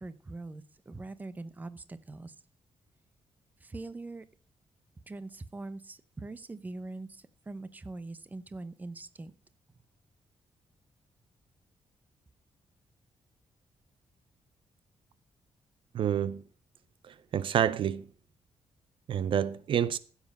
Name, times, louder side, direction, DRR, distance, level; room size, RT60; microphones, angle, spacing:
voice 1, 0.0-2.3 3.6-4.2 5.1-9.3, right 2 dB, 15° right, 0.8 m, -42 dB
voice 2, 15.9-16.4 17.1-18.1 19.1-20.0, right 9 dB, 60° right, 0.6 m, -28 dB
16.0 x 7.4 x 5.3 m
wide cardioid pair, 170°, 10 cm